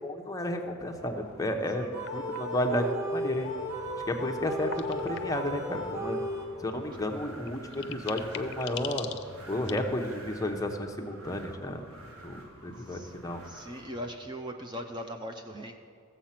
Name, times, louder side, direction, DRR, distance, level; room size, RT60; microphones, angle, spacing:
voice 1, 0.0-3.5 4.1-6.2 6.6-9.1 9.5-11.8 12.2-13.4, left 1 dB, 15° left, 3 dB, 0.8 m, -32 dB
Wind, 0.6-14.2, right 1 dB, 80° right, 1.2 m, -49 dB
sound 1, 1.9-6.8, equal, 50° right, 2.2 m, -35 dB
sound 2, 2.0-2.6 4.2-5.6 7.0-7.1 7.4-9.8, left 10 dB, 55° left, 0.6 m, -42 dB
voice 2, 6.7-7.0 12.8-13.1 13.4-15.8, equal, 20° right, 5 dB, 0.5 m, -40 dB
15.0 x 7.4 x 5.8 m, 2.4 s
head